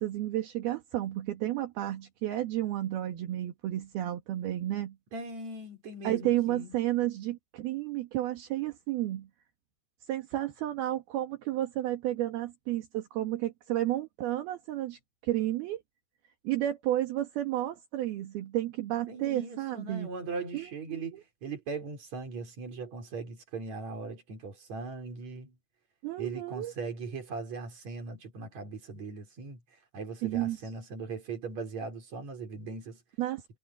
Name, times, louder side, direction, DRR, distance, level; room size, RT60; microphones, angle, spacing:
voice 1, 0.0-5.0 6.0-9.3 10.1-15.8 16.5-20.1 20.5-21.2 26.0-26.7 30.2-30.6 33.2-33.6, right 14 dB, 70° right, 3.6 m, -32 dB
voice 2, 5.1-6.7 19.1-25.6 26.2-29.6 29.9-33.0, right 4 dB, 40° right, 5.5 m, -39 dB
omnidirectional pair, 4.8 m